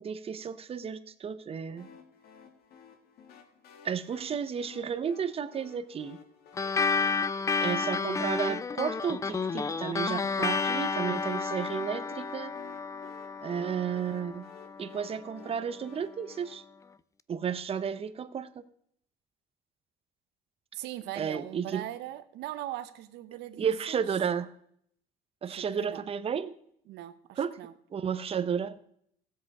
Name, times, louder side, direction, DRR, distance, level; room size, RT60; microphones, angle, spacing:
voice 1, 0.0-1.9 3.8-6.2 7.6-12.5 13.4-14.5 14.8-16.6 17.3-18.6 21.1-21.8 23.6-24.5 25.4-26.6 27.4-27.6 27.9-28.8, right 7 dB, 35° right, 13 dB, 0.7 m, -32 dB
sound 1, 1.8-16.5, left 6 dB, 65° left, 1.8 m, -54 dB
sound 2, 6.6-15.4, left 4 dB, 20° left, 0.3 m, -31 dB
voice 2, 20.7-24.0 25.5-26.0 26.9-27.7, right 14 dB, 85° right, 12 dB, 0.9 m, -40 dB
15.5 x 7.6 x 4.7 m, 0.69 s
cardioid pair, 110°, 17 cm